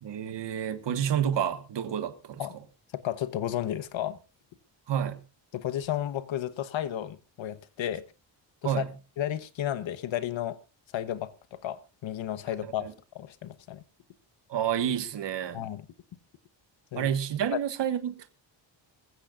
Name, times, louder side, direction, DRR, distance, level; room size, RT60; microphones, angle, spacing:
voice 1, 0.0-2.4 4.9-5.2 8.6-8.9 12.8-12.9 14.5-15.6 16.9-18.3, right 9 dB, 70° right, 1.5 m, -29 dB
voice 2, 2.9-4.2 5.5-8.0 8.6-8.8 9.2-10.6 10.9-12.9 13.1-13.8 15.5-15.8 16.9-17.1 17.5-17.6, left 11 dB, 85° left, 1.1 m, -33 dB
21.5 x 15.0 x 2.5 m
wide cardioid pair, 160°, 45 cm